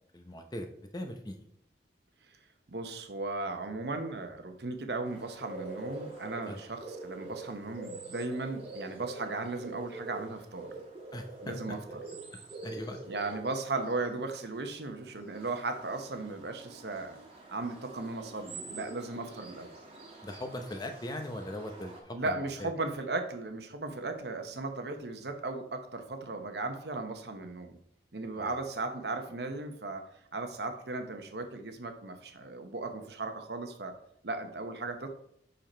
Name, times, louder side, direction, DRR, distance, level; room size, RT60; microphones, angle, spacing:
voice 1, 0.1-0.7 0.9-1.5 6.5-6.6 11.1-11.8 12.3-13.0 20.2-22.7 28.3-28.6, left 1 dB, 20° left, 5 dB, 0.7 m, -40 dB
voice 2, 2.7-10.7 11.4-12.0 13.1-17.2 17.5-19.7 22.1-27.8 28.1-30.0 30.3-33.9 34.2-35.1, right 3 dB, 65° right, 6 dB, 0.9 m, -36 dB
sound 1, 5.0-22.0, right 3 dB, 30° right, 1.5 m, -46 dB
5.6 x 5.3 x 4.3 m, 0.68 s
head